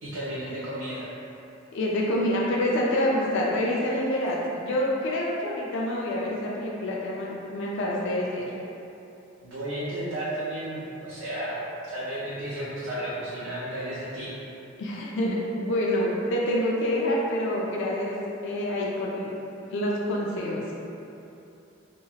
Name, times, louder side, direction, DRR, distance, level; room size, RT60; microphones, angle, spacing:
voice 1, 0.0-1.1 9.4-11.6 11.9-14.3, right 1 dB, 70° right, -10 dB, 0.5 m, -33 dB
voice 2, 1.7-8.5 14.8-18.2 18.4-19.3 19.7-20.6, left 1 dB, 60° left, -4 dB, 0.4 m, -27 dB
2.9 x 2.3 x 2.8 m, 2.8 s
head